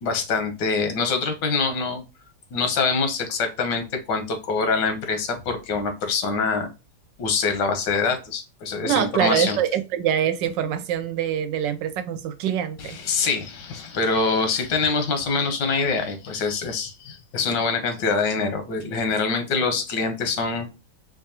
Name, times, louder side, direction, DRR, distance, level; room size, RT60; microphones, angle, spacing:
voice 1, 0.0-2.0 2.5-6.7 7.2-9.6 12.8-20.7, left 4 dB, 85° left, 6 dB, 1.6 m, -25 dB
voice 2, 8.8-13.0, right 10 dB, 90° right, 9 dB, 1.3 m, -24 dB
5.1 x 2.4 x 2.8 m, 0.29 s
omnidirectional pair, 1.9 m